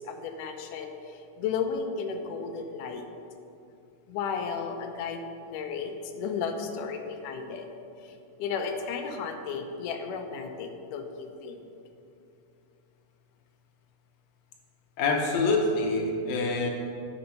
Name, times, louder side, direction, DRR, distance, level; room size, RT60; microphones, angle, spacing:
voice 1, 0.0-3.0 4.1-7.7 8.0-11.6, left 5 dB, 90° left, 5 dB, 2.3 m, -34 dB
voice 2, 15.0-16.7, left 3 dB, 70° left, 1 dB, 2.0 m, -26 dB
9.2 x 5.4 x 5.8 m, 2.6 s
omnidirectional pair, 3.6 m